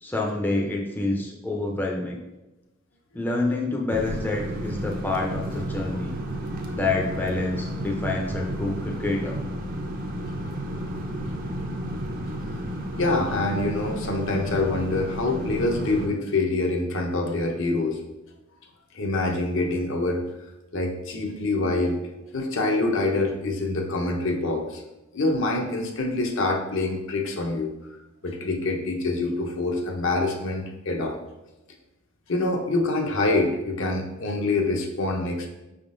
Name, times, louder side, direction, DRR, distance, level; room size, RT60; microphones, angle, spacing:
voice 1, 0.0-2.2 3.1-6.2 6.7-9.4, left 2 dB, 10° left, -1 dB, 0.4 m, -27 dB
sound 1, 3.9-16.1, equal, 45° right, 0.5 m, -32 dB
voice 2, 13.0-18.0 18.9-20.2 20.7-22.0 22.3-24.8 25.1-27.7 28.2-31.2 32.3-35.5, left 2 dB, 65° left, 2 dB, 0.7 m, -25 dB
5.3 x 3.6 x 2.5 m, 0.99 s
head